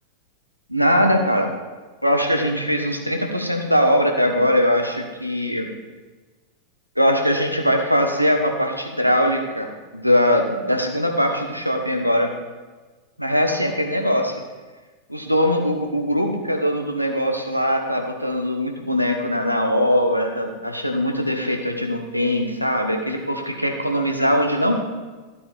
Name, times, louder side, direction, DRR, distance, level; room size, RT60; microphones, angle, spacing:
voice 1, 0.7-1.5 2.0-5.7 7.0-9.7 9.9-12.3 13.2-14.3 15.1-24.9, equal, 90° right, 3 dB, 1.1 m, -21 dB
13.0 x 8.3 x 3.5 m, 1.3 s
figure-of-eight pair, 90°, 0 cm